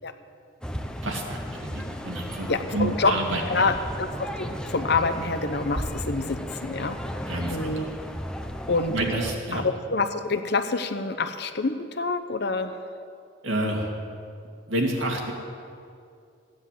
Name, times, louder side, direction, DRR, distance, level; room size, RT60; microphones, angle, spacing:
sound 1, 0.6-9.3, equal, 5° left, 0.7 m, -34 dB
voice 1, 1.0-3.7 7.3-7.9 8.9-9.6 13.4-13.9 14.7-15.3, right 1 dB, 80° right, 0 dB, 2.4 m, -29 dB
voice 2, 2.5-3.2 3.5-7.0 7.4-7.9 8.7-8.9 9.5-12.8, left 3 dB, 55° left, 9 dB, 0.9 m, -27 dB
15.5 x 10.0 x 7.6 m, 2.5 s
head